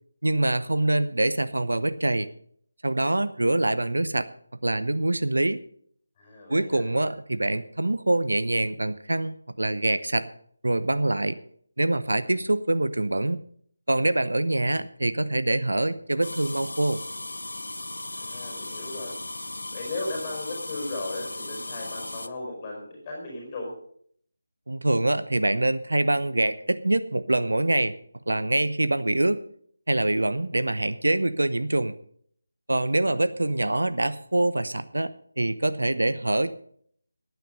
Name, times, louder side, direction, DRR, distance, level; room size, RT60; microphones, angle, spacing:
voice 1, 0.2-2.3 2.8-4.3 4.6-5.6 6.5-10.3 10.6-11.4 11.8-13.4 13.9-17.0 24.7-27.9 28.3-29.4 29.9-31.9 32.7-35.1 35.4-36.5, right 2 dB, 65° right, 13 dB, 0.8 m, -25 dB
voice 2, 6.2-6.9 18.1-19.1 19.7-23.7 33.0-33.2, left 2 dB, 20° left, -1 dB, 5.1 m, -36 dB
sound 1, 16.2-22.3, left 2 dB, 65° left, 0.9 m, -37 dB
17.0 x 9.3 x 5.3 m, 0.62 s
figure-of-eight pair, 155°, 0 cm